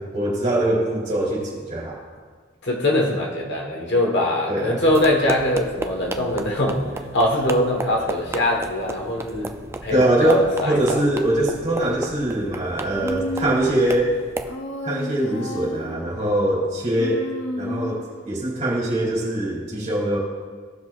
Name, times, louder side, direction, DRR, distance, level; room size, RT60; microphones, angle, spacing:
voice 1, 0.0-2.0 4.5-4.8 9.9-14.1 14.8-17.2 17.6-20.2, right 1 dB, 35° right, -4 dB, 2.8 m, -22 dB
voice 2, 2.6-6.9 7.1-9.6 9.8-11.0, left 1 dB, 60° left, 0 dB, 1.3 m, -22 dB
sound 1, 4.8-14.6, right 2 dB, 15° right, 0.3 m, -34 dB
Human voice, 13.0-13.9 14.5-16.0 16.9-18.2, left 1 dB, 75° left, 0.9 m, -31 dB
16.0 x 6.2 x 2.4 m, 1.6 s
head